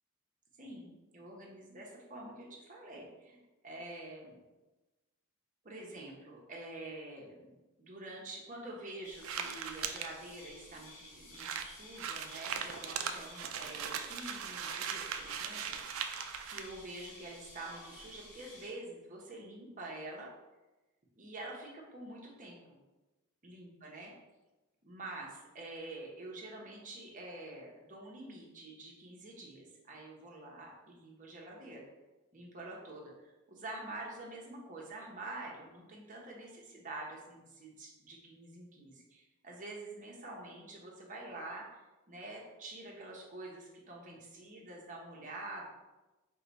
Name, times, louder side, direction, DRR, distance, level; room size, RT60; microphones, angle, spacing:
voice 1, 0.6-4.4 5.6-16.2 16.5-20.3 21.2-22.8 23.4-24.1 24.8-31.8 32.3-41.6 42.1-45.7, right 2 dB, 40° right, -2 dB, 0.9 m, -47 dB
sound 1, 9.0-18.7, left 2 dB, 40° left, 1.0 m, -53 dB
sound 2, 9.2-10.1 10.8-10.9 11.0-11.1 11.3-16.6, right 7 dB, 85° right, 0.4 m, -39 dB
4.7 x 2.3 x 4.0 m, 1.1 s
head